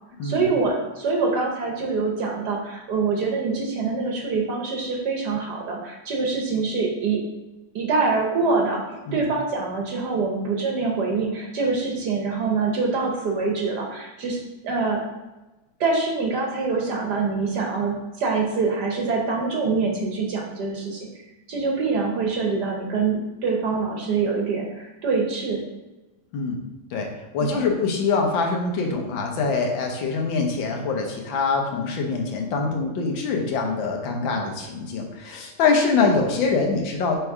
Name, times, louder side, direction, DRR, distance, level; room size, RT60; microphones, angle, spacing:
voice 1, 0.2-7.2 7.7-15.0 15.8-21.1 21.5-25.6 27.4-27.6, right 4 dB, 60° right, 0 dB, 1.4 m, -25 dB
voice 2, 27.3-37.2, left 4 dB, 70° left, 2 dB, 1.7 m, -24 dB
6.1 x 3.4 x 4.7 m, 1.1 s
omnidirectional pair, 2.2 m